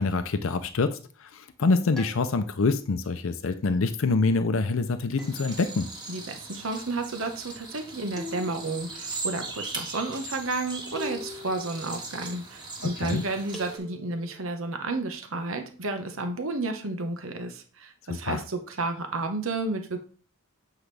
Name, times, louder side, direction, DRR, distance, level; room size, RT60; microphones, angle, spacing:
voice 1, 0.0-5.9 12.8-13.2 18.1-18.4, left 3 dB, 65° left, 9 dB, 0.5 m, -26 dB
sound 1, 2.0-2.8 5.2-6.0 8.1-9.0 11.0-11.8 13.5-14.4, left 1 dB, ahead, 1.1 m, -42 dB
sound 2, 5.2-13.8, right 3 dB, 20° right, 1.6 m, -39 dB
voice 2, 6.1-20.0, right 2 dB, 65° right, 6 dB, 1.1 m, -32 dB
8.0 x 4.8 x 3.3 m, 0.41 s
head